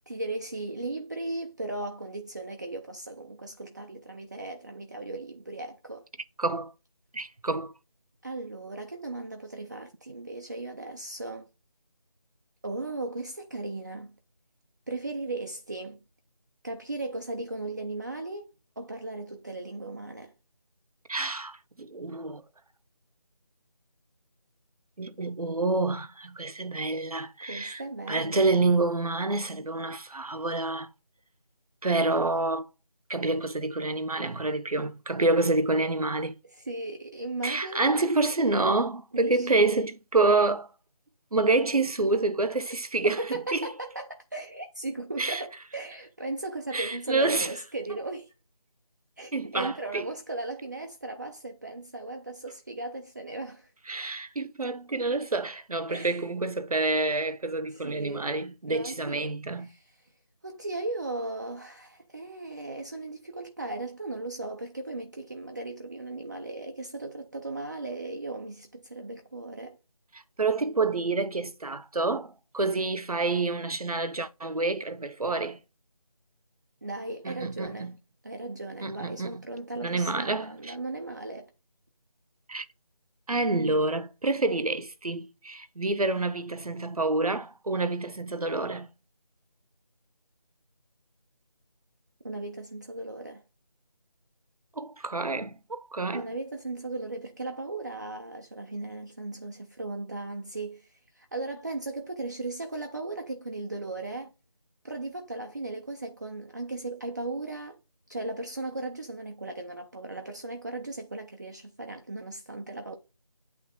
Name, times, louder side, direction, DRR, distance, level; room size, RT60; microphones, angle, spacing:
voice 1, 0.1-6.1 8.2-11.5 12.6-14.1 14.9-16.0 16.6-20.3 27.5-28.6 36.4-38.0 39.1-39.8 43.2-48.3 49.2-53.7 55.9-56.2 57.7-58.3 58.7-59.9 60.4-69.8 76.8-77.9 78.2-81.5 92.2-93.4 96.1-104.3 104.8-107.8 108.1-112.9, right 2 dB, 30° right, 0.5 m, -37 dB
voice 2, 6.4-6.7 7.1-7.7 21.1-22.4 25.0-27.8 28.1-30.9 31.8-32.7 33.1-36.4 37.4-40.7 41.3-43.7 45.2-45.4 46.7-47.5 49.3-50.0 53.9-59.7 70.1-75.6 77.2-78.0 78.8-79.4 79.8-80.7 82.5-82.7 83.3-88.9 94.8-96.2, right 3 dB, 80° right, 0.9 m, -28 dB
8.8 x 3.3 x 3.6 m
figure-of-eight pair, 165°, 19 cm